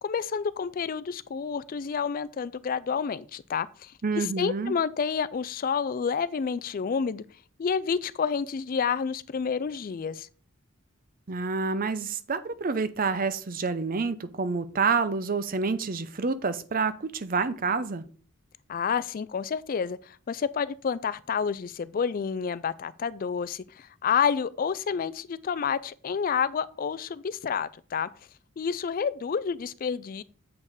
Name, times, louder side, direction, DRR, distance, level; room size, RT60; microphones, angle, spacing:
voice 1, 0.0-7.2 7.6-10.3 18.7-28.1 28.6-30.2, left 6 dB, 40° left, 0.3 m, -29 dB
voice 2, 4.0-4.8 11.3-18.1, right 4 dB, 40° right, 0.6 m, -28 dB
8.1 x 5.4 x 4.8 m
head